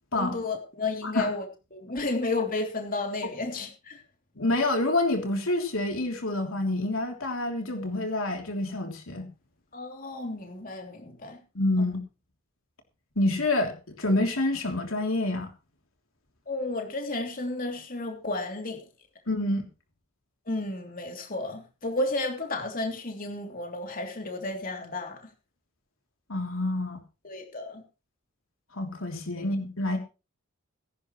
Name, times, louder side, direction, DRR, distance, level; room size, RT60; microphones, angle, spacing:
voice 1, 0.1-1.4 1.7-4.0 9.7-11.4 11.8-11.9 16.5-18.8 20.5-25.2 27.2-27.8 29.4-29.5, left 2 dB, 40° left, 2 dB, 3.1 m, -32 dB
voice 2, 4.4-9.3 11.5-12.0 13.2-15.5 19.3-19.6 26.3-27.0 28.7-30.0, left 2 dB, 75° left, 3 dB, 3.2 m, -27 dB
21.5 x 11.5 x 3.2 m, 0.32 s
head